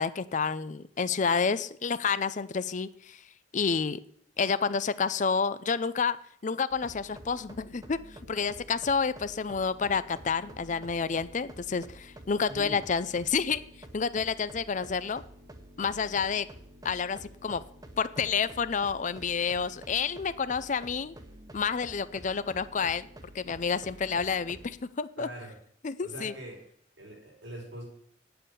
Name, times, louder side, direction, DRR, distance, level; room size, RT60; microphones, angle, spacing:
voice 1, 0.0-3.2 3.5-4.0 4.4-6.2 6.4-8.0 8.3-13.6 13.9-15.2 15.8-16.5 16.8-17.6 18.0-21.1 21.5-23.1 23.3-25.3 25.8-26.3, left 5 dB, 40° left, 15 dB, 0.5 m, -29 dB
sound 1, 6.7-24.8, right 1 dB, 20° right, 1.2 m, -49 dB
voice 2, 12.5-12.8 25.2-25.6 26.0-26.6 27.0-27.8, right 1 dB, 90° right, -2 dB, 4.9 m, -42 dB
10.0 x 7.8 x 6.9 m, 0.66 s
head